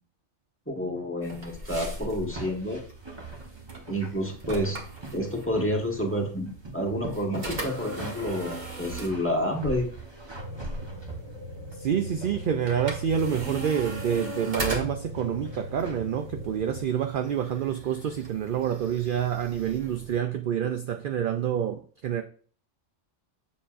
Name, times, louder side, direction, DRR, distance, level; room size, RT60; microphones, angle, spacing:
voice 1, 0.7-2.8 3.9-4.8 5.1-9.9, equal, 10° left, 1.4 m, -29 dB
sound 1, 1.2-20.2, right 1 dB, 40° right, 1.6 m, -40 dB
sound 2, 2.2-6.1 6.4-8.4 8.9-11.7 12.2-13.0 13.4-13.7 15.1-16.1, right 2 dB, 20° right, 1.1 m, -42 dB
sound 3, 10.3-16.8, equal, 80° right, 2.3 m, -40 dB
voice 2, 11.8-22.2, right 9 dB, 60° right, 0.6 m, -28 dB
7.2 x 6.9 x 2.5 m
omnidirectional pair, 1.3 m